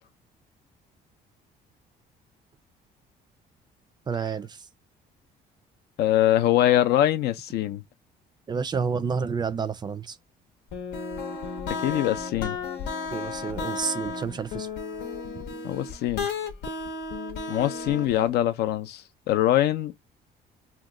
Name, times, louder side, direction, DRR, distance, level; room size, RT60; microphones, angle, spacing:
voice 1, 4.1-4.6 8.5-10.2 13.1-14.7, right 6 dB, 25° right, 0.3 m, -29 dB
voice 2, 6.0-7.8 11.7-12.6 15.6-16.3 17.5-20.0, left 13 dB, 70° left, 0.4 m, -23 dB
sound 1, 10.7-18.3, left 4 dB, 90° left, 0.8 m, -33 dB
2.8 x 2.2 x 3.6 m
cardioid pair, 110°, 17 cm